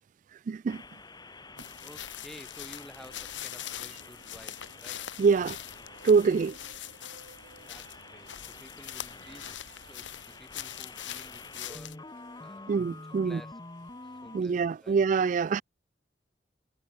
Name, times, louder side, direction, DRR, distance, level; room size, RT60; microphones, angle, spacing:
voice 1, 0.3-0.8 5.2-5.6 6.0-6.6 12.7-13.4 14.3-15.6, right 5 dB, 45° right, 0.3 m, -25 dB
sound 1, 0.7-14.4, left 3 dB, 20° left, 1.5 m, -48 dB
voice 2, 1.2-5.1 7.7-12.0 12.4-12.8 13.1-13.9 14.2-15.0, equal, ahead, 4.3 m, -53 dB
sound 2, 1.6-11.9, left 11 dB, 90° left, 1.5 m, -43 dB
sound 3, 2.9-10.4, right 3 dB, 65° right, 2.6 m, -57 dB
head